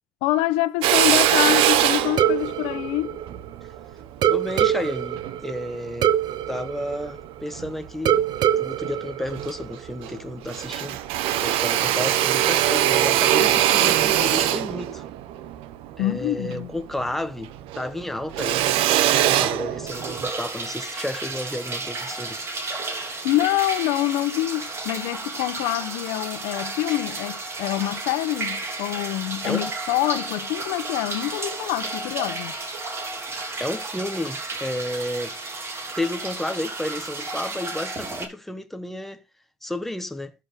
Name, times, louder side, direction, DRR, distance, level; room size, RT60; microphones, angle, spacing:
voice 1, 0.2-3.2 16.0-16.7 23.2-32.5, left 16 dB, 80° left, 1.2 m, -25 dB
Drill, 0.8-5.4 5.9-7.1 7.5-8.5 8.8-8.9 9.2-10.2 10.5-17.1 17.4-20.3, right 12 dB, 70° right, 1.2 m, -22 dB
sound 1, 2.2-3.8 4.2-7.6 8.1-10.0, right 10 dB, 45° right, 0.8 m, -24 dB
voice 2, 4.3-6.1 6.5-8.2 8.6-11.0 11.4-15.0 16.0-18.7 19.3-22.4 29.4-29.7 33.3-35.4 36.0-39.2 39.6-40.3, left 1 dB, 5° left, 1.1 m, -31 dB
Small cave river flow, 19.9-38.2, right 3 dB, 25° right, 3.6 m, -33 dB
13.0 x 6.6 x 5.2 m
cardioid pair, 140°, 10 cm